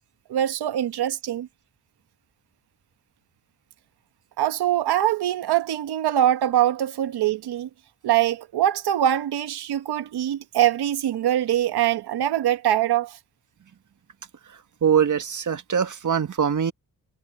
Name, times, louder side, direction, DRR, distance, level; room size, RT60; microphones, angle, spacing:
voice 1, 0.3-1.5 4.4-7.7 8.0-13.2, right 12 dB, 85° right, 1.3 m, -23 dB
voice 2, 14.5-16.7, right 7 dB, 50° right, 1.7 m, -23 dB
cardioid pair, 70°, 38 cm